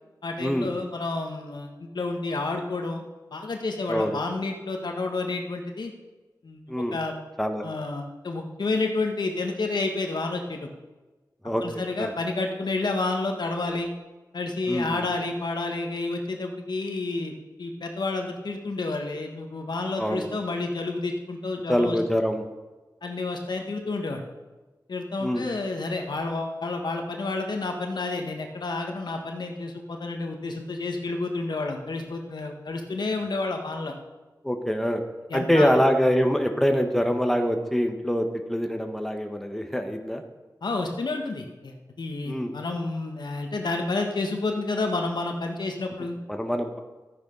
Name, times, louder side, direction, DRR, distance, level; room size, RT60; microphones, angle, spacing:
voice 1, 0.2-3.0 3.3-5.9 6.4-6.6 6.9-7.2 7.6-10.7 11.6-13.9 14.3-22.0 23.0-24.2 24.9-33.9 35.3-35.7 40.6-46.2, left 3 dB, 75° left, 3 dB, 1.6 m, -30 dB
voice 2, 14.7-15.0 20.0-20.3 21.7-22.4 25.2-25.5 34.4-35.0 35.3-40.2 42.3-42.5 46.3-46.8, equal, 5° left, 4 dB, 1.3 m, -24 dB
13.0 x 9.0 x 5.4 m, 1.2 s
wide cardioid pair, 70°, 7 cm